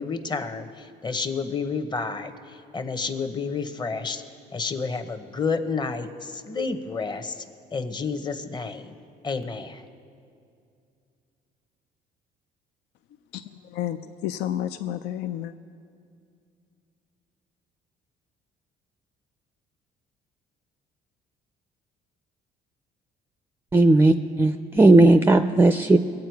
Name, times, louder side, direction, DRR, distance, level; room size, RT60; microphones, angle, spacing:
voice 1, 0.0-4.2 4.5-7.4 7.7-8.9 9.2-9.8, left 4 dB, 25° left, 9 dB, 0.9 m, -30 dB
voice 2, 13.3-15.5, left 11 dB, 80° left, 9 dB, 0.5 m, -31 dB
voice 3, 23.7-26.0, right 2 dB, 15° right, 9 dB, 0.4 m, -16 dB
22.0 x 8.6 x 4.6 m, 2.4 s
cardioid pair, 110°, 17 cm